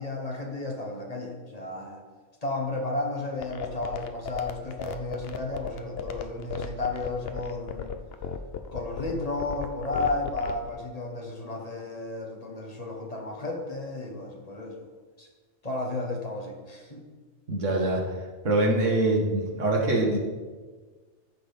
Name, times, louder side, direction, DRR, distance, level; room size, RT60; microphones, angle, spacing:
voice 1, 0.0-2.0 2.4-7.9 8.7-14.8 15.2-15.3 15.6-17.1, left 2 dB, 35° left, 0 dB, 1.3 m, -33 dB
sound 1, 3.4-10.7, left 7 dB, 60° left, 0.8 m, -34 dB
voice 2, 17.5-18.0 18.4-20.2, right 2 dB, 90° right, -1 dB, 1.9 m, -24 dB
13.5 x 6.0 x 3.5 m, 1.4 s
omnidirectional pair, 1.2 m